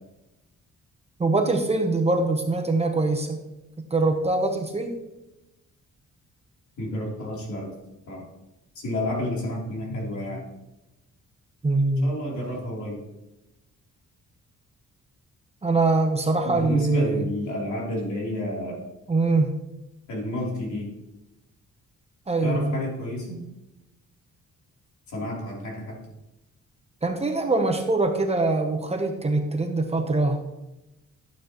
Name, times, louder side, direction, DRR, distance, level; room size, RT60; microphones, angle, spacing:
voice 1, 1.2-3.4 3.9-4.9 11.6-12.1 15.6-17.3 19.1-19.5 22.3-22.8 27.0-30.4, right 2 dB, 20° right, 4 dB, 0.9 m, -23 dB
voice 2, 6.8-7.7 8.1-8.3 8.8-10.4 12.0-13.0 16.4-18.8 20.1-20.9 22.4-23.4 25.1-26.0, left 1 dB, 70° left, -3 dB, 3.4 m, -30 dB
12.0 x 9.1 x 3.0 m, 0.96 s
cardioid pair, 145°, 30 cm